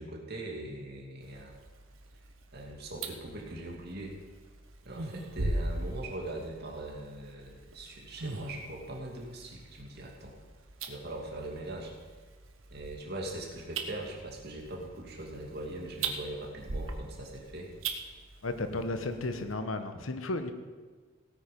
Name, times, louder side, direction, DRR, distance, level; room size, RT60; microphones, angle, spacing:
voice 1, 0.0-1.6 2.5-4.1 4.8-10.3 10.9-11.9 12.7-17.7, right 1 dB, 50° right, -1 dB, 2.6 m, -41 dB
sound 1, 1.2-19.5, right 3 dB, 75° right, 1.3 m, -41 dB
voice 2, 18.4-20.5, left 2 dB, 75° left, 8 dB, 1.1 m, -34 dB
17.0 x 9.1 x 5.3 m, 1.4 s
head